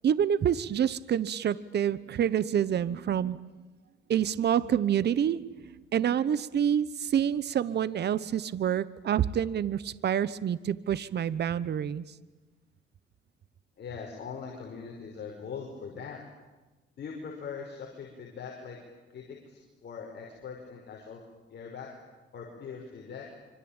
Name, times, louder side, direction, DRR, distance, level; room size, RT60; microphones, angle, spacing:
voice 1, 0.0-3.4 4.1-12.0, right 9 dB, 55° right, 17 dB, 1.1 m, -27 dB
voice 2, 13.8-16.2 17.0-18.8 19.1-21.2 21.5-21.9 22.3-23.3, left 6 dB, 60° left, 0 dB, 5.6 m, -41 dB
26.0 x 25.0 x 9.0 m, 1.2 s
cardioid pair, 90°, 20 cm